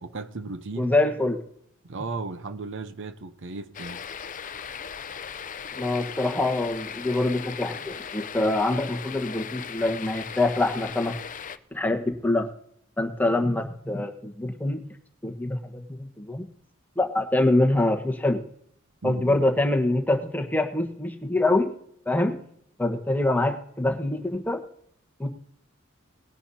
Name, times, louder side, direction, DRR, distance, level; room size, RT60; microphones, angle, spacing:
voice 1, 0.0-0.9 1.8-4.0 19.0-19.4, right 3 dB, 65° right, 0.8 m, -35 dB
voice 2, 0.8-1.4 5.7-11.1 11.7-12.5 13.0-14.8 15.2-16.5 17.0-18.4 19.0-21.7 22.1-22.4 22.8-24.6 25.2-25.3, left 2 dB, 10° left, 1.3 m, -25 dB
sound 1, 3.7-11.6, left 7 dB, 40° left, 0.5 m, -38 dB
20.0 x 10.5 x 2.8 m
head